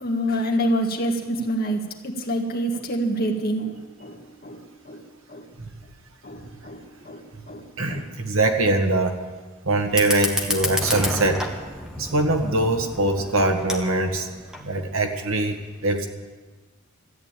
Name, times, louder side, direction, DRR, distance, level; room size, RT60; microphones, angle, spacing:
voice 1, 0.0-1.8 2.3-3.7 4.0-4.1 4.4-4.6 4.9-5.0 5.3-5.4 6.2-6.4 6.6-6.8 7.1-7.2 7.5-7.6 7.9-8.0, right 1 dB, 45° left, 1 dB, 1.8 m, -25 dB
voice 2, 7.8-9.1 9.6-11.4 12.0-14.3 14.6-16.1, right 2 dB, 75° right, 4 dB, 1.7 m, -22 dB
Fire, 9.8-14.8, left 1 dB, 5° right, 1.3 m, -31 dB
13.5 x 9.5 x 8.9 m, 1.3 s
head